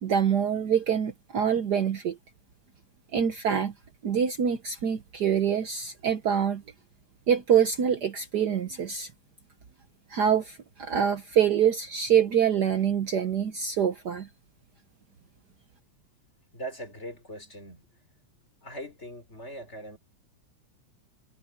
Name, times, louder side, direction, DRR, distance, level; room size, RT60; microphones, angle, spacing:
voice 1, 0.0-2.2 3.1-3.7 4.0-6.6 7.3-9.1 10.1-14.3, right 8 dB, 80° right, 0.9 m, -25 dB
voice 2, 16.5-18.0 18.6-20.0, right 1 dB, 20° left, 5.0 m, -41 dB
omnidirectional pair, 3.4 m